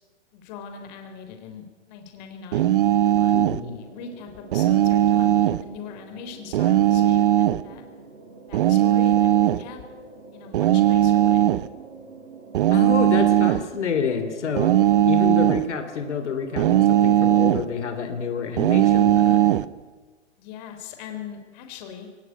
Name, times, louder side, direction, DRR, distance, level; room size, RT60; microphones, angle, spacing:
voice 1, 0.3-2.7 3.2-3.3 3.6-7.8 8.5-9.8 10.3-11.4 20.4-22.1, left 6 dB, 35° left, 6 dB, 3.7 m, -40 dB
sound 1, 2.5-3.6 4.5-5.6 6.5-7.7 8.5-9.6 10.5-11.7 12.5-13.7 14.6-15.7 16.6-17.7 18.6-19.7, right 12 dB, 50° right, 0.8 m, -18 dB
sound 2, 3.0-19.5, right 3 dB, 90° right, 4.7 m, -45 dB
voice 2, 3.3-3.8 12.7-14.7 15.1-19.6, left 6 dB, 80° left, 7 dB, 3.3 m, -28 dB
22.0 x 19.0 x 9.3 m, 1.4 s
hypercardioid pair, 155°, 35 cm